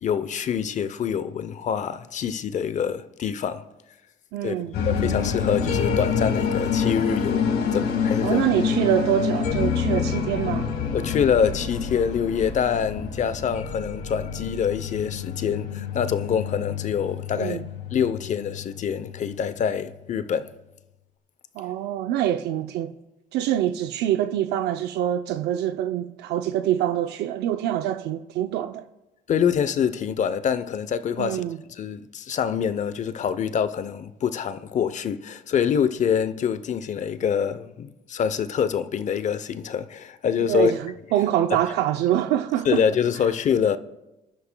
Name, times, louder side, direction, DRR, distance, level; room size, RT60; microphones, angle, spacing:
voice 1, 0.0-3.7 4.4-4.5 4.8-8.4 10.9-17.6 17.9-20.5 29.3-31.4 31.7-40.7 42.6-43.8, left 7 dB, 45° left, 0.7 m, -25 dB
voice 2, 4.3-4.8 8.2-10.7 17.4-17.6 21.6-22.9 23.3-28.8 31.2-31.6 40.5-42.9, right 11 dB, 80° right, 0.5 m, -25 dB
sound 1, 4.7-19.8, left 6 dB, 70° left, 2.0 m, -27 dB
26.5 x 11.5 x 2.2 m
cardioid pair, 110°, 17 cm